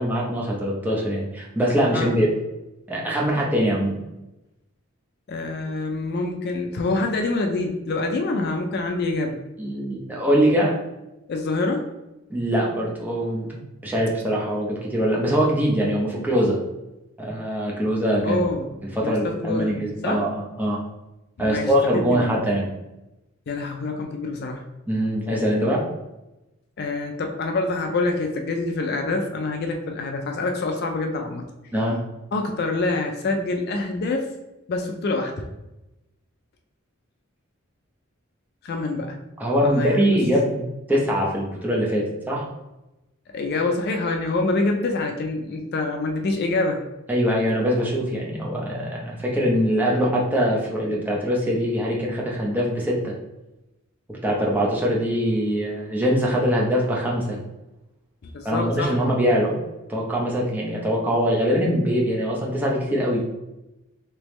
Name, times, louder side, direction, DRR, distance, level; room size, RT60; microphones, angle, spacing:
voice 1, 0.0-2.3 2.9-4.0 9.6-10.7 12.3-13.5 13.8-16.6 17.2-18.4 19.0-20.8 21.4-22.7 24.9-25.8 31.7-32.0 39.4-40.6 40.9-42.5 47.1-53.1 54.1-57.4 58.4-59.6 59.9-63.2, equal, 10° right, -3 dB, 0.7 m, -23 dB
voice 2, 5.3-9.4 11.3-11.9 18.2-18.8 19.0-19.8 20.0-20.2 21.4-22.2 23.5-24.6 26.8-31.4 32.3-34.3 34.7-35.5 38.6-39.2 39.6-40.2 43.3-46.8 58.2-59.0, left 3 dB, 50° left, 4 dB, 0.4 m, -26 dB
3.3 x 3.0 x 3.1 m, 0.97 s
head